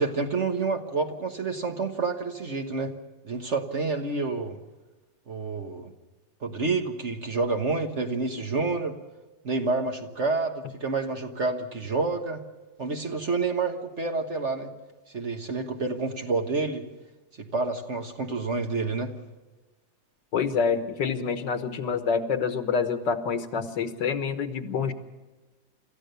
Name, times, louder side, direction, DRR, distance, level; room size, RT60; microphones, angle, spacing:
voice 1, 0.0-2.9 3.2-4.6 5.3-5.9 6.4-9.0 9.4-12.4 12.8-14.7 15.1-16.8 17.4-19.1, right 3 dB, 40° right, 5 dB, 1.5 m, -28 dB
voice 2, 20.3-24.9, left 6 dB, 70° left, 9 dB, 1.9 m, -27 dB
27.0 x 14.5 x 6.8 m, 1.2 s
omnidirectional pair, 2.0 m